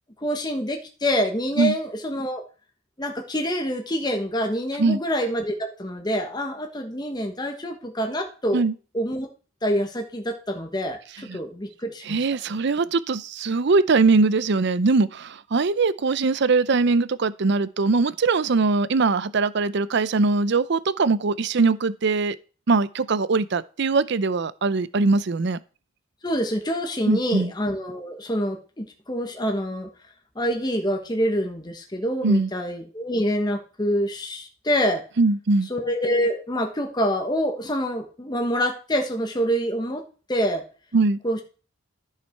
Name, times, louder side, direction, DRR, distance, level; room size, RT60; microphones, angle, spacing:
voice 1, 0.2-2.4 3.0-8.6 8.9-9.3 9.6-12.2 26.2-29.9 30.3-35.0 35.7-40.0 40.3-40.6 41.2-41.4, equal, 20° left, 1.3 m, -26 dB
voice 2, 12.0-22.4 22.7-25.6 27.1-27.5 32.2-32.5 35.2-35.7 40.9-41.2, right 3 dB, 55° right, 0.5 m, -21 dB
13.5 x 5.8 x 4.6 m
head